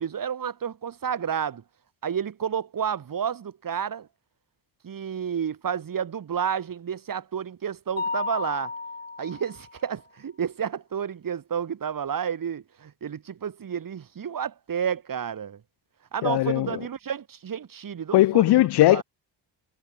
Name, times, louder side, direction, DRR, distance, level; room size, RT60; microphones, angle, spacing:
voice 1, 0.0-1.6 2.0-4.1 4.8-8.7 9.2-15.6 16.1-18.5 18.9-19.0, right 8 dB, 45° right, 2.3 m, -30 dB
Mallet percussion, 8.0-9.8, left 4 dB, 20° left, 1.9 m, -32 dB
voice 2, 16.2-16.8 18.1-19.0, left 15 dB, 60° left, 0.5 m, -19 dB
cardioid pair, 105°, 45 cm